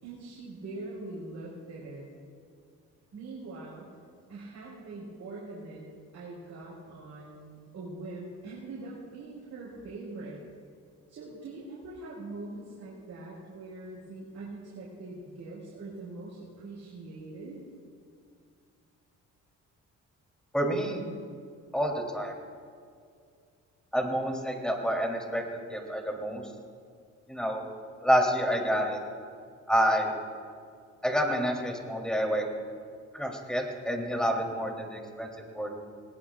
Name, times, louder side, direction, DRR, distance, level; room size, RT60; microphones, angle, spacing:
voice 1, 0.0-2.0 3.1-3.8 4.3-10.4 11.1-17.6, right 2 dB, 65° right, -6 dB, 4.7 m, -43 dB
voice 2, 20.5-21.0 21.7-22.3 23.9-26.5 27.3-27.6 28.0-29.0 29.7-30.1 31.0-32.4 33.1-35.7, equal, 5° left, 1 dB, 3.2 m, -28 dB
21.0 x 19.5 x 2.4 m, 2.2 s
cardioid pair, 90°, 30 cm